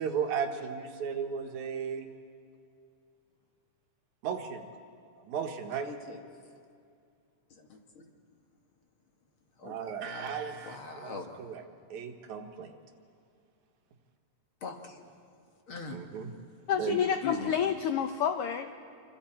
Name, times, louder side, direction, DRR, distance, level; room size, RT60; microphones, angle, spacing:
voice 1, 0.0-2.1 4.2-4.6 5.3-5.9 9.6-11.6 11.9-12.7 15.9-16.3 16.8-17.2, right 6 dB, 80° right, 5 dB, 2.6 m, -35 dB
voice 2, 5.8-6.2 7.5-8.0 9.6-11.3 14.6-15.0 15.7-16.1 17.2-17.5, left 5 dB, 50° left, 2 dB, 2.1 m, -41 dB
voice 3, 16.7-18.7, left 8 dB, 75° left, 7 dB, 1.3 m, -29 dB
27.5 x 24.0 x 4.4 m, 2.4 s
omnidirectional pair, 3.4 m